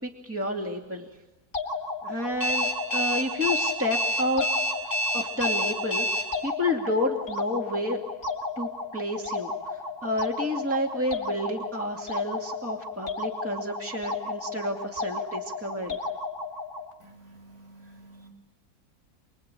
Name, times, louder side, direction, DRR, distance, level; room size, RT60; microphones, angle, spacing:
voice 1, 0.0-1.1 2.0-4.4 5.1-8.0 8.6-9.5 10.0-16.0, left 1 dB, 10° right, 1 dB, 2.4 m, -30 dB
sound 1, 1.5-16.9, left 3 dB, 35° left, 2.4 m, -34 dB
Alarm, 2.4-6.2, equal, 40° right, 7.6 m, -26 dB
voice 2, 17.0-18.3, right 2 dB, 75° right, 0 dB, 6.0 m, -51 dB
29.0 x 22.0 x 9.1 m, 1.0 s
omnidirectional pair, 1.6 m